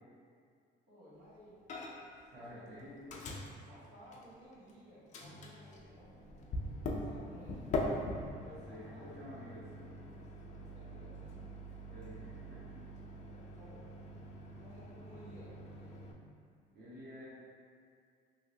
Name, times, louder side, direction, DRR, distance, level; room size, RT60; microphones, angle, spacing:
voice 1, 0.9-1.6 2.3-6.2 6.9-7.7 8.4-9.2 10.6-11.4 13.2-14.0 14.6-16.0, equal, 80° right, -9 dB, 1.0 m, -58 dB
Microwave oven, 1.7-2.2 2.4-4.7 5.1-16.1, left 1 dB, 40° left, 0.4 m, -43 dB
voice 2, 2.3-3.1 6.9-7.4 8.4-9.9 11.9-12.7 16.7-17.3, equal, 55° right, -9 dB, 1.0 m, -51 dB
3.0 x 2.8 x 2.7 m, 2.2 s
cardioid pair, 130°, 19 cm